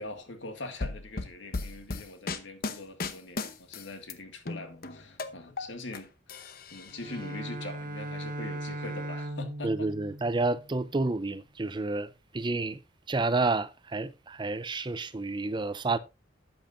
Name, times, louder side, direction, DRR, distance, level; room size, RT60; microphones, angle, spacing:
voice 1, 0.0-9.9, left 2 dB, 75° left, 2.1 m, -42 dB
sound 1, 0.8-4.1 4.5-6.0 6.3-7.2, left 3 dB, 50° left, 0.9 m, -36 dB
Bowed string instrument, 6.9-11.0, right 1 dB, 45° right, 1.2 m, -38 dB
voice 2, 9.6-12.8 13.1-16.0, right 3 dB, 25° right, 0.5 m, -30 dB
13.0 x 8.9 x 2.6 m
head